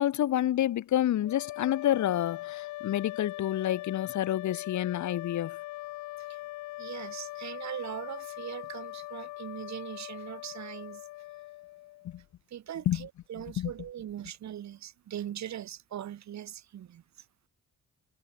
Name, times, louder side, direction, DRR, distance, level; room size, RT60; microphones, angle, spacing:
voice 1, 0.0-5.6 12.0-12.1 12.9-13.1 13.6-13.7, left 12 dB, 70° left, 2.0 m, -28 dB
sound 1, 1.2-12.2, left 18 dB, 90° left, 0.9 m, -41 dB
voice 2, 6.8-11.1 12.5-17.2, right 11 dB, 65° right, 2.5 m, -41 dB
cardioid pair, 90°, 30 cm